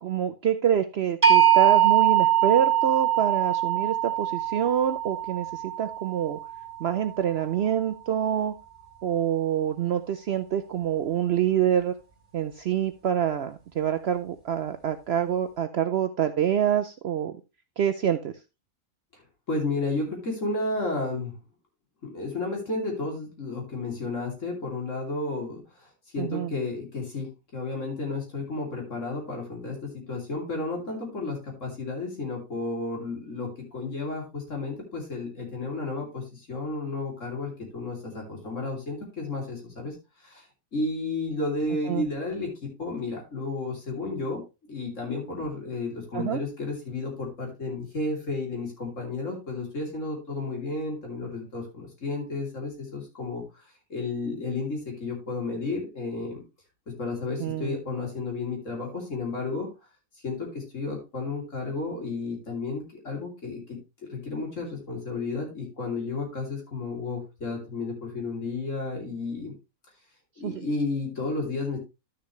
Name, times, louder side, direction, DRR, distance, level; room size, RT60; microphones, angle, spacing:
voice 1, 0.0-5.5 5.8-6.4 6.8-8.5 9.0-11.9 12.3-17.3 17.8-18.3 26.2-26.5 41.9-42.0 46.1-46.4 57.4-57.8 70.4-70.6, right 9 dB, 60° right, 9 dB, 0.7 m, -26 dB
sound 1, 1.2-7.2, right 11 dB, 25° right, 2.6 m, -22 dB
voice 2, 19.5-21.4 22.0-25.6 26.1-39.9 40.2-40.4 40.7-42.5 42.8-44.4 44.7-53.4 53.9-56.4 57.0-59.7 60.2-63.6 64.1-69.5 70.4-71.8, left 3 dB, 60° left, 0 dB, 3.4 m, -32 dB
12.0 x 6.8 x 3.1 m, 0.27 s
omnidirectional pair, 1.5 m